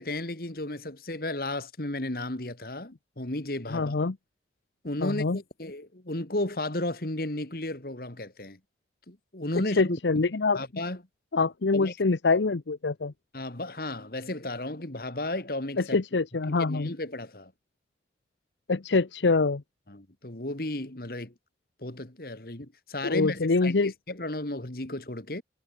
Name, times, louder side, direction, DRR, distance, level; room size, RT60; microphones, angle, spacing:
voice 1, 0.0-3.9 4.8-8.6 9.1-10.0 10.5-11.0 11.7-11.9 13.3-16.0 16.5-17.5 19.9-21.3 21.8-25.4, left 1 dB, 55° left, 2.2 m, -34 dB
voice 2, 3.7-4.2 5.0-5.4 9.8-10.6 11.3-13.1 15.8-16.9 18.7-19.6 23.0-23.9, left 3 dB, 85° left, 0.8 m, -25 dB
head